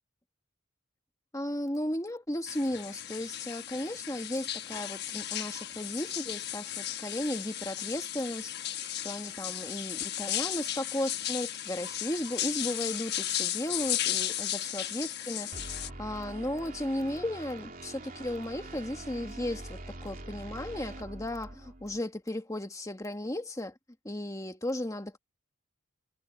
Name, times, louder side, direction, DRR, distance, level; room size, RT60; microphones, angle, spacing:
voice 1, 1.3-23.8 24.0-25.2, left 1 dB, 15° left, 1.6 m, -35 dB
sound 1, 2.5-15.9, left 11 dB, 55° left, 1.2 m, -35 dB
sound 2, 15.5-22.0, right 2 dB, 45° right, 3.2 m, -44 dB
head